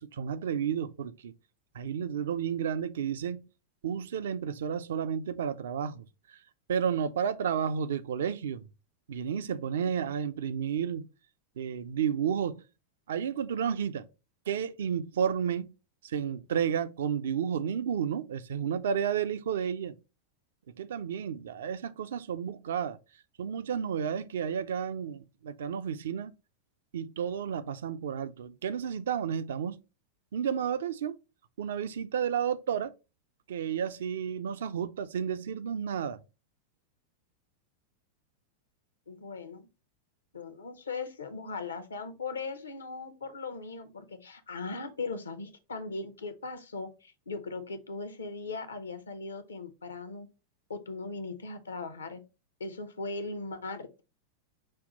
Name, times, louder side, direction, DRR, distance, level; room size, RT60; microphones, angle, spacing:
voice 1, 0.0-1.3 1.7-3.4 3.8-6.4 6.7-8.7 9.1-11.1 11.6-12.6 13.1-14.1 14.5-15.7 16.0-20.0 20.8-23.0 23.4-26.3 26.9-29.8 30.3-31.2 31.6-32.9 33.5-36.2, right 8 dB, 60° right, 0.4 m, -31 dB
voice 2, 39.1-39.7 40.3-50.3 50.7-52.2 52.6-54.0, left 3 dB, 70° left, 0.7 m, -39 dB
5.3 x 2.3 x 4.0 m
figure-of-eight pair, 90°, 0 cm